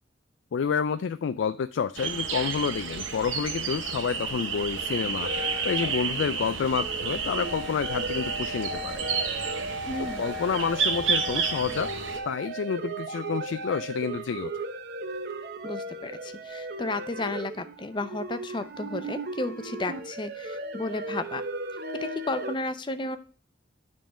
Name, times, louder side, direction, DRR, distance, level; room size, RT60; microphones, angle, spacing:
voice 1, 0.5-5.3 5.6-9.0 10.0-11.9 12.2-14.7, left 6 dB, 75° left, 11 dB, 0.3 m, -29 dB
sound 1, 2.0-12.2, right 5 dB, 85° right, 1.1 m, -31 dB
sound 2, 5.2-22.5, right 2 dB, 55° right, 0.9 m, -36 dB
voice 2, 9.9-10.2 15.6-21.4 22.0-23.2, left 2 dB, 25° left, 10 dB, 0.6 m, -33 dB
9.2 x 3.9 x 4.9 m, 0.39 s
head